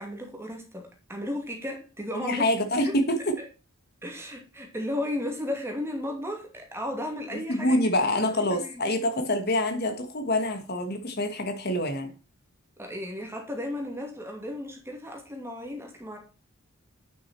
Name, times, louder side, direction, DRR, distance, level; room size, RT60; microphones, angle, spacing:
voice 1, 0.0-2.4 2.8-2.9 3.4-3.5 4.0-7.8 8.3-8.8 12.8-16.2, left 1 dB, 10° right, 2 dB, 2.4 m, -34 dB
voice 2, 2.2-3.4 7.3-12.1, left 1 dB, 45° left, 7 dB, 1.5 m, -26 dB
9.4 x 6.5 x 4.3 m, 0.33 s
head